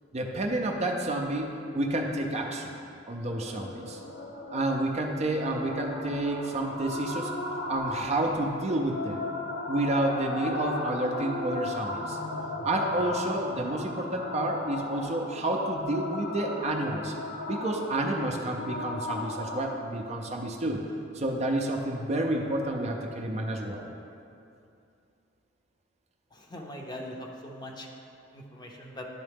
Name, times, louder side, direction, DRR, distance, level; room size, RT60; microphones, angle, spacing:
voice 1, 0.1-2.7 3.1-4.0 4.5-7.3 7.7-9.2 9.7-12.2 12.6-17.1 17.5-20.8 21.1-23.9, right 1 dB, 35° right, 2 dB, 0.5 m, -30 dB
sound 1, 3.2-19.8, left 2 dB, 60° left, 0.8 m, -36 dB
voice 2, 26.3-27.9 28.3-29.0, left 1 dB, 20° left, 0 dB, 0.7 m, -41 dB
11.0 x 3.7 x 3.5 m, 2.6 s
head